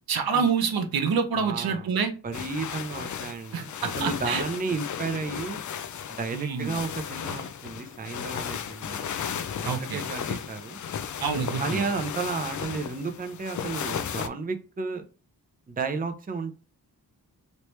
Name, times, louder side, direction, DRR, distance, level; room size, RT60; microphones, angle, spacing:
voice 1, 0.1-2.1 3.5-4.4 6.3-6.7 9.7-10.1 11.2-11.9, right 6 dB, 80° right, 0.8 m, -27 dB
voice 2, 1.3-1.9 2.2-3.7 3.9-5.6 6.1-9.1 9.6-10.8 11.6-15.0 15.7-16.5, right 4 dB, 25° right, 0.5 m, -32 dB
sound 1, 2.3-14.3, left 8 dB, 55° left, 0.4 m, -35 dB
3.2 x 2.9 x 3.1 m
wide cardioid pair, 90°, 36 cm